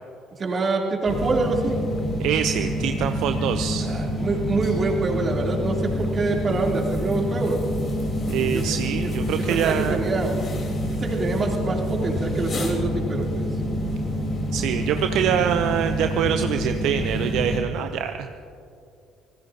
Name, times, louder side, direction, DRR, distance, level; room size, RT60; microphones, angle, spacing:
voice 1, 0.4-1.8 3.8-7.6 8.4-8.6 9.0-9.1 9.5-10.3 11.0-13.5, right 3 dB, 40° right, -1 dB, 3.2 m, -26 dB
sound 1, 1.1-17.6, equal, 50° left, 3.8 m, -27 dB
voice 2, 2.2-3.9 8.3-10.0 14.5-18.4, right 9 dB, 70° right, 7 dB, 0.6 m, -25 dB
26.0 x 19.0 x 2.8 m, 2.5 s
hypercardioid pair, 55°, 0 cm